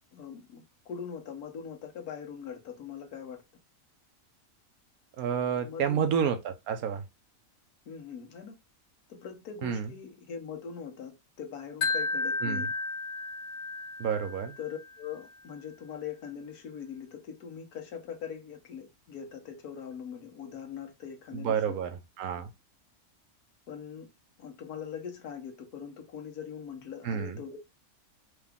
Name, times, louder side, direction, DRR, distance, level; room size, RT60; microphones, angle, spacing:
voice 1, 0.1-3.4 5.6-6.1 7.9-8.5 9.1-12.7 14.6-21.6 23.7-24.1 24.4-27.6, left 7 dB, 85° left, 1.5 m, -42 dB
voice 2, 5.2-7.0 9.6-9.9 12.4-12.7 14.0-14.5 21.3-21.9 22.2-22.5 27.0-27.4, right 7 dB, 75° right, 1.2 m, -29 dB
Wind chime, 11.8-14.9, left 3 dB, 65° left, 0.8 m, -33 dB
4.8 x 2.4 x 3.4 m
omnidirectional pair, 1.6 m